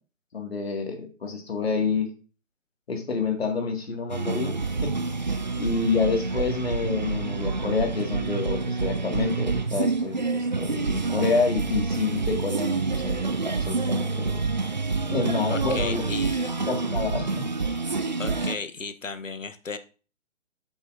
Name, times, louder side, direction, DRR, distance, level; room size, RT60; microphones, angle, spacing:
voice 1, 0.3-2.1 2.9-4.9 5.2-14.4 15.1-16.0 16.7-17.7, left 4 dB, 50° left, 4 dB, 2.1 m, -28 dB
sound 1, 4.1-18.5, right 4 dB, 35° right, 0.4 m, -27 dB
voice 2, 15.5-16.6 18.2-19.8, left 4 dB, 75° left, 11 dB, 1.1 m, -35 dB
7.9 x 7.7 x 2.6 m, 0.36 s
figure-of-eight pair, 145°, 39 cm